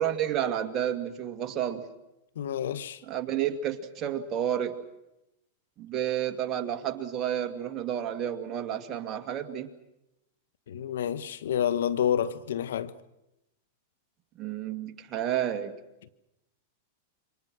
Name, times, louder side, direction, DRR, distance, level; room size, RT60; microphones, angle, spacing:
voice 1, 0.0-1.9 3.0-4.7 5.8-9.7 14.4-15.7, right 10 dB, 35° right, 2.2 m, -30 dB
voice 2, 2.4-3.0 10.7-12.9, left 9 dB, 80° left, 1.2 m, -29 dB
27.5 x 25.0 x 6.2 m
hypercardioid pair, 115°, 0 cm